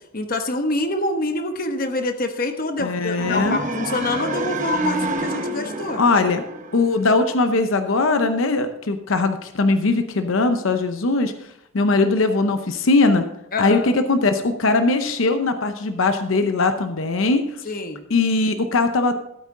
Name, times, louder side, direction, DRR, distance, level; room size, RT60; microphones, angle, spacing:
voice 1, 0.1-6.0 13.5-13.9 17.7-18.0, left 2 dB, 45° left, 7 dB, 1.0 m, -26 dB
voice 2, 2.8-3.6 6.0-6.4 6.7-11.3 11.7-13.2 13.6-17.5 18.1-19.1, left 3 dB, 80° left, 8 dB, 0.7 m, -20 dB
sound 1, 3.1-7.2, right 2 dB, 40° right, 1.0 m, -28 dB
13.0 x 8.3 x 3.7 m, 0.80 s
head